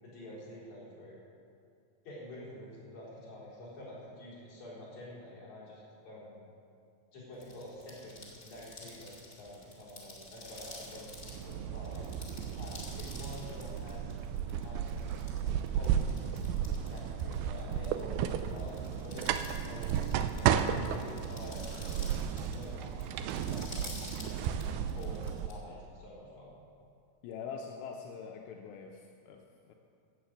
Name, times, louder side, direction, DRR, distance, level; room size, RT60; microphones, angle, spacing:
voice 1, 0.0-1.2 2.0-6.5 7.1-12.1 12.6-14.0 14.6-15.0 15.4-16.1 16.8-18.7 19.0-22.2 22.6-24.6 24.9-26.5, left 1 dB, 45° left, -7 dB, 5.4 m, -48 dB
sound 1, 7.3-25.5, left 2 dB, 25° left, 1.7 m, -50 dB
sound 2, 11.0-25.5, right 9 dB, 85° right, 2.2 m, -34 dB
voice 2, 27.2-29.7, left 6 dB, 85° left, 2 dB, 2.9 m, -44 dB
16.0 x 7.2 x 7.8 m, 2.4 s
omnidirectional pair, 4.8 m